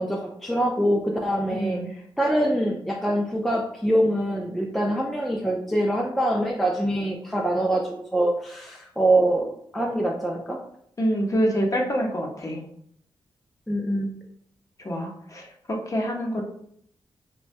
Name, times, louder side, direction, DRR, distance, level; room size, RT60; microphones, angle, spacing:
voice 1, 0.0-1.8 2.2-10.6 13.7-14.1, right 1 dB, ahead, -1 dB, 0.3 m, -24 dB
voice 2, 1.5-1.9 11.0-12.6 14.8-16.4, equal, 35° left, 0 dB, 0.7 m, -26 dB
3.2 x 2.2 x 2.5 m, 0.68 s
cardioid pair, 85°, 10 cm